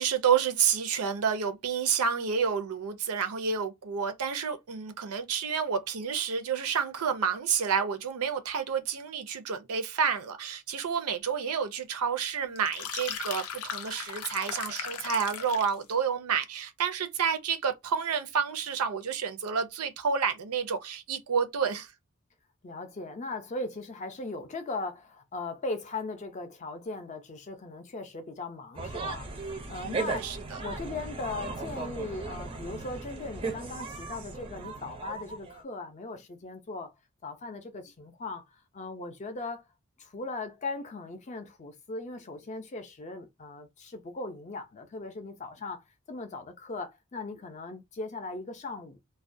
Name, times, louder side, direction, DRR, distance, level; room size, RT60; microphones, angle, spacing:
voice 1, 0.0-21.9 29.8-30.6, right 6 dB, 90° right, 0.5 m, -29 dB
sound 1, 12.6-15.8, left 7 dB, 90° left, 0.5 m, -37 dB
voice 2, 22.6-29.3 29.7-30.4 30.6-36.9 37.2-39.7 40.0-49.0, left 3 dB, 35° left, 0.4 m, -38 dB
sound 2, 28.8-35.6, right 3 dB, 25° right, 0.4 m, -37 dB
2.3 x 2.1 x 2.5 m
head